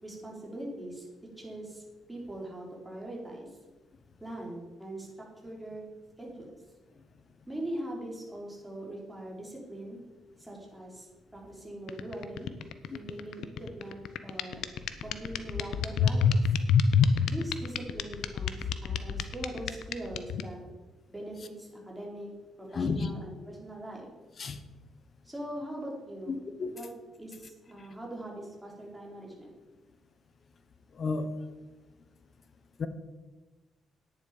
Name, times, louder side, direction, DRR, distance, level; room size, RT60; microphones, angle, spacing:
voice 1, 0.0-1.1 1.4-1.8 2.1-3.5 4.2-5.1 5.4-5.8 6.2-6.6 7.5-10.0 10.4-12.5 12.9-14.6 15.0-16.3 17.3-20.6 21.1-22.3 22.6-24.1 25.2-26.3 26.7-26.9 27.2-29.5, right 1 dB, 10° right, -3 dB, 4.3 m, -41 dB
sound 1, 11.9-20.4, left 9 dB, 80° left, 0.8 m, -26 dB
voice 2, 22.7-23.1 24.4-24.6 26.3-26.8 31.0-31.3 32.8-32.9, left 4 dB, 45° left, 11 dB, 1.2 m, -31 dB
10.5 x 9.7 x 5.2 m, 1.2 s
cardioid pair, 90°, 0 cm